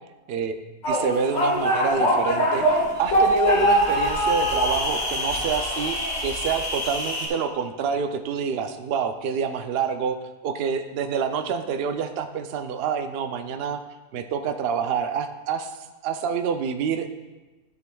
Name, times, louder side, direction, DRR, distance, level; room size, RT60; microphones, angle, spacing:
sound 1, 0.8-7.3, equal, 65° left, 2.7 m, -23 dB
voice 1, 0.9-10.2 10.4-13.8 14.1-15.7 16.0-17.1, right 6 dB, 85° right, 7 dB, 0.5 m, -27 dB
13.0 x 6.5 x 2.3 m, 1.2 s
omnidirectional pair, 1.6 m